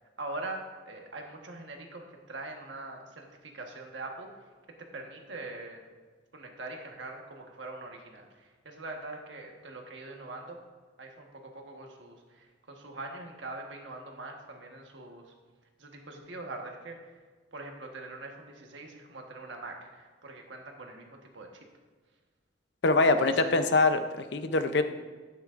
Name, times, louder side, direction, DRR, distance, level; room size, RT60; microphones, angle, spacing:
voice 1, 0.2-4.5 4.8-5.9 6.3-10.6 11.0-15.3 15.8-17.1 17.5-21.5 23.0-23.6, right 2 dB, 90° right, 2 dB, 1.3 m, -43 dB
voice 2, 22.8-24.8, left 3 dB, 65° left, 9 dB, 0.6 m, -24 dB
11.5 x 9.1 x 2.5 m, 1.4 s
head